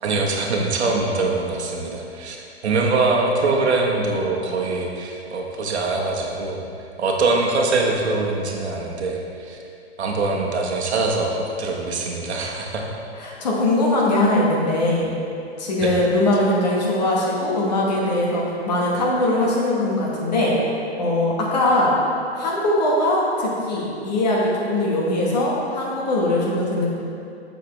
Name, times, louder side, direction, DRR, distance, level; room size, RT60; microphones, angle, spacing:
voice 1, 0.0-6.6 7.0-9.6 10.0-12.8 15.8-15.9, right 3 dB, 75° right, -1 dB, 1.2 m, -23 dB
voice 2, 13.2-15.1 15.6-20.6 21.0-21.9 22.3-26.9, left 1 dB, 40° left, -4 dB, 1.3 m, -21 dB
6.6 x 6.5 x 3.2 m, 2.6 s
hypercardioid pair, 165°, 34 cm